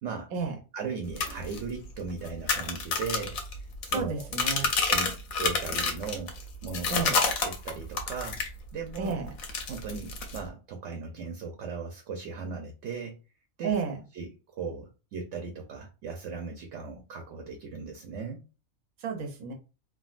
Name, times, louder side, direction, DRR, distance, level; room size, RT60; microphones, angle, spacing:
voice 1, 0.7-3.4 3.8-4.3 4.9-6.3 6.6-8.4 8.7-9.2 9.7-13.2 13.6-13.8 14.1-18.4, right 5 dB, 70° right, 3 dB, 0.9 m, -37 dB
sound 1, 1.1-8.6 8.9-10.5, left 4 dB, 80° left, 1.1 m, -30 dB
voice 2, 3.9-4.7 6.9-7.2 9.0-9.3 13.6-14.0 19.0-19.5, right 5 dB, 90° right, 2 dB, 1.2 m, -31 dB
3.6 x 2.1 x 2.4 m, 0.32 s
omnidirectional pair, 1.4 m